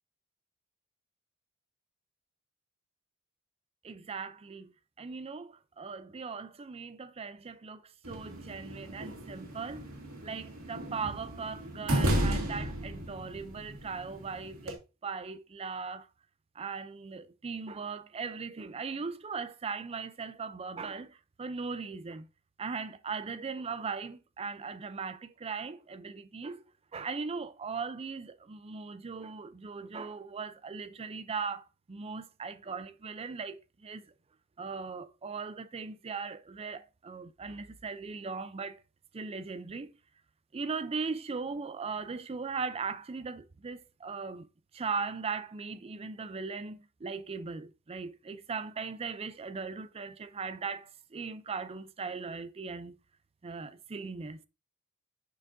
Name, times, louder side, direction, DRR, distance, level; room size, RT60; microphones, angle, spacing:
voice 1, 3.8-9.9 10.2-16.1 16.6-22.3 22.6-26.6 26.9-34.1 34.6-38.8 39.1-39.9 40.5-44.5 44.7-52.9 53.4-54.4, right 5 dB, 30° right, 0.5 m, -39 dB
sound 1, 8.0-14.7, right 1 dB, 85° right, 2.2 m, -34 dB
6.8 x 6.1 x 2.6 m
head